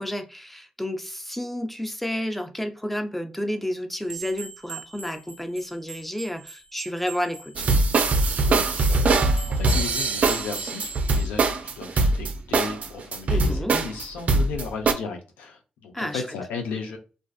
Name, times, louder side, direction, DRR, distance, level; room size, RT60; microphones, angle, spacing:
voice 1, 0.0-7.6 13.3-13.8 15.9-16.2, left 1 dB, 5° left, 0.5 m, -31 dB
sound 1, 4.0-11.3, right 3 dB, 20° right, 0.8 m, -41 dB
sound 2, 7.6-14.9, right 3 dB, 60° right, 0.4 m, -22 dB
voice 2, 8.4-17.0, left 5 dB, 85° left, 0.4 m, -35 dB
2.4 x 2.3 x 2.3 m
supercardioid pair, 45°, 3 cm